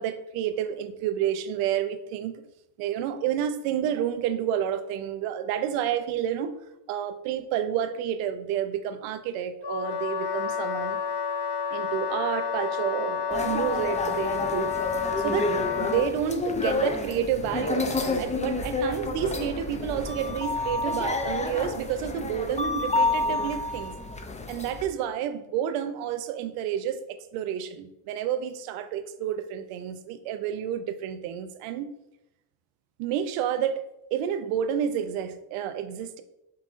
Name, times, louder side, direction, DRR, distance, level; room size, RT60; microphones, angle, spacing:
voice 1, 0.0-2.4 2.8-6.5 6.9-11.0 11.7-14.7 15.2-15.5 15.8-24.0 24.5-31.9 33.0-33.8 34.1-36.2, right 9 dB, 90° right, 10 dB, 0.6 m, -30 dB
Wind instrument woodwind instrument, 9.6-16.1, left 6 dB, 60° left, 0.7 m, -30 dB
sound 1, 13.3-24.9, left 3 dB, 15° left, 0.5 m, -29 dB
5.7 x 3.7 x 2.4 m, 0.85 s
supercardioid pair, 65°, 49 cm